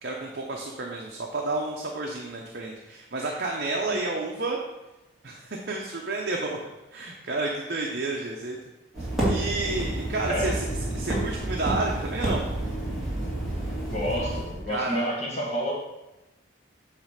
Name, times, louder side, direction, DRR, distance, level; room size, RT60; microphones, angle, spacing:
voice 1, 0.0-4.6 5.2-6.6 6.9-8.6 9.2-10.7 10.9-12.5 14.7-15.1, right 2 dB, 50° right, -1 dB, 0.8 m, -30 dB
sound 1, 8.9-14.6, right 1 dB, ahead, 2.5 m, -29 dB
voice 2, 13.9-15.7, equal, 35° left, -2 dB, 1.3 m, -29 dB
8.5 x 3.2 x 6.5 m, 0.99 s
head